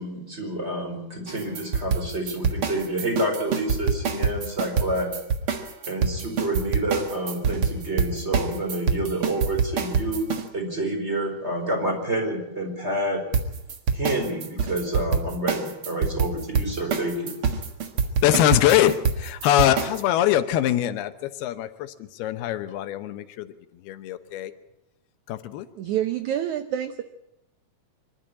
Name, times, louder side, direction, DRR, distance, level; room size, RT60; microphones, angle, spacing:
voice 1, 0.0-5.1 5.9-10.3 10.5-13.2 13.9-17.3, right 1 dB, 15° right, 2 dB, 4.4 m, -28 dB
sound 1, 1.3-10.4 13.3-20.0, right 6 dB, 50° right, 1.7 m, -25 dB
voice 2, 18.2-23.5 23.8-24.5 25.3-25.7, left 12 dB, 85° left, 10 dB, 2.9 m, -23 dB
voice 3, 25.8-27.0, right 11 dB, 80° right, 10 dB, 1.7 m, -27 dB
25.0 x 12.0 x 8.7 m, 0.88 s
omnidirectional pair, 4.4 m